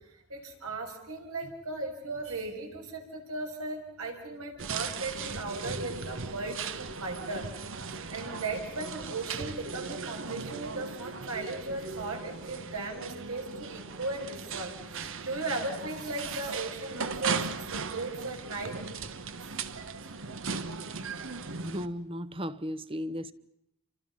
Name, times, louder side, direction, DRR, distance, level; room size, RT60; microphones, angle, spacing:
voice 1, 0.3-7.5 8.1-18.8, right 2 dB, 85° right, 6.5 m, -37 dB
sound 1, 4.6-21.9, right 5 dB, 65° right, 1.3 m, -38 dB
voice 2, 21.6-23.3, equal, 25° right, 1.0 m, -35 dB
30.0 x 26.0 x 5.7 m
head